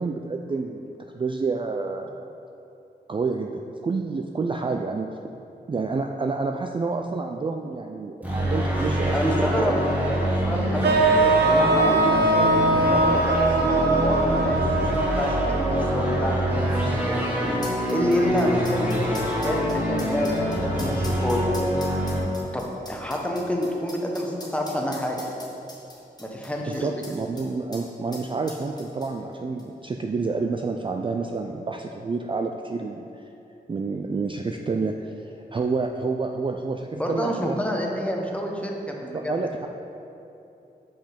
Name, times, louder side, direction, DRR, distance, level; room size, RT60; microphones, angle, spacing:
voice 1, 0.0-2.3 3.1-5.1 5.7-9.7 26.7-33.3 33.7-37.6 39.1-39.7, right 4 dB, 30° right, 3 dB, 0.3 m, -29 dB
sound 1, 8.2-22.2, equal, 10° right, 1.4 m, -25 dB
voice 2, 9.1-12.5 12.9-16.5 16.8-20.3 20.6-21.4 22.5-25.3 26.2-26.9 37.0-39.4, equal, 5° left, 0 dB, 1.0 m, -28 dB
sound 2, 10.8-16.9, right 2 dB, 75° right, 0.6 m, -22 dB
sound 3, 12.7-13.0 13.7-13.9 14.8-27.5 27.7-27.8 28.1-29.3 29.6-29.7, left 1 dB, 25° left, 1.3 m, -43 dB
5.8 x 5.1 x 5.1 m, 2.8 s
wide cardioid pair, 80°, 17 cm